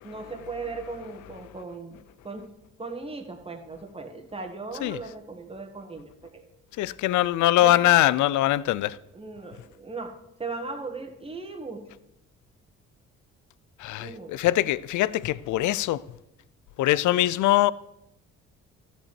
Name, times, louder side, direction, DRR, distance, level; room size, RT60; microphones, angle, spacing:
voice 1, 0.0-2.0 2.2-2.5 2.8-6.4 7.6-7.9 9.1-11.8 14.0-14.3, right 3 dB, 20° right, 1.7 m, -37 dB
voice 2, 6.8-9.0 13.8-16.0 16.8-17.7, left 15 dB, 75° left, 0.5 m, -22 dB
13.0 x 5.5 x 7.0 m
cardioid pair, 95°, 30 cm